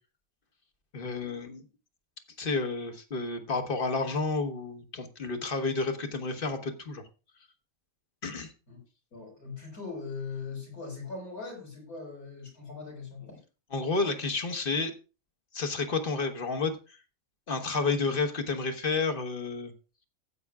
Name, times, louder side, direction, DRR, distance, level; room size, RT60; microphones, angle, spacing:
voice 1, 0.9-1.6 2.4-7.0 8.2-8.5 13.7-14.9 15.5-16.8 17.5-19.7, left 4 dB, 40° left, 1.3 m, -30 dB
voice 2, 9.1-13.4, left 4 dB, 85° left, 5.0 m, -40 dB
15.0 x 8.5 x 2.4 m
omnidirectional pair, 1.5 m